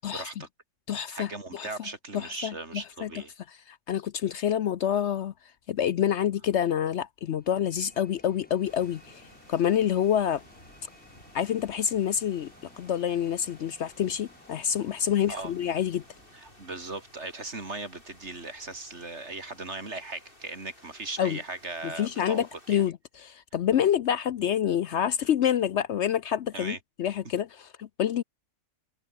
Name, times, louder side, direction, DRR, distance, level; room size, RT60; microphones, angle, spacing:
voice 1, 0.1-0.5 1.1-3.3 15.3-15.5 16.3-22.8 26.5-26.8, right 3 dB, 55° right, 3.7 m, -38 dB
voice 2, 0.9-1.7 2.1-3.1 3.7-5.3 5.7-9.2 9.5-10.4 11.3-12.5 12.8-16.0 21.2-21.4 21.8-28.2, left 9 dB, 65° left, 0.9 m, -27 dB
sound 1, 7.2-17.1, equal, 5° left, 7.7 m, -57 dB
sound 2, 8.6-22.9, left 1 dB, 40° left, 7.9 m, -56 dB
omnidirectional pair, 1.4 m